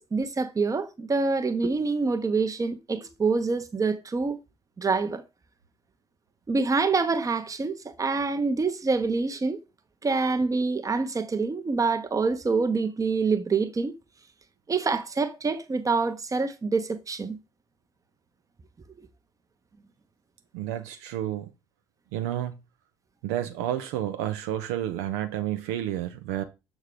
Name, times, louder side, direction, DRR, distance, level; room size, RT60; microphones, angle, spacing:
voice 1, 0.1-4.4 4.8-5.2 6.5-9.6 10.0-13.9 14.7-17.4, right 4 dB, 20° right, 0.9 m, -26 dB
voice 2, 20.5-21.5 22.1-22.6 23.2-26.4, right 12 dB, 65° right, 0.6 m, -30 dB
6.7 x 3.7 x 4.9 m
figure-of-eight pair, 50°, 15 cm